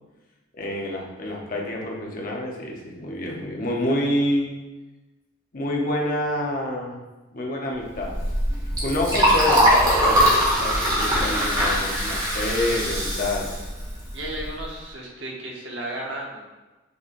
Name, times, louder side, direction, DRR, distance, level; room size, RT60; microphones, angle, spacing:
voice 1, 0.6-4.5 5.5-7.0 7.3-8.2 8.8-10.3 10.6-13.5, left 1 dB, 45° left, -1 dB, 0.8 m, -27 dB
Liquid, 7.9-14.6, equal, 20° right, 1.2 m, -22 dB
voice 2, 14.1-16.5, right 1 dB, 65° right, -2 dB, 1.0 m, -34 dB
6.2 x 3.3 x 2.6 m, 1.1 s
head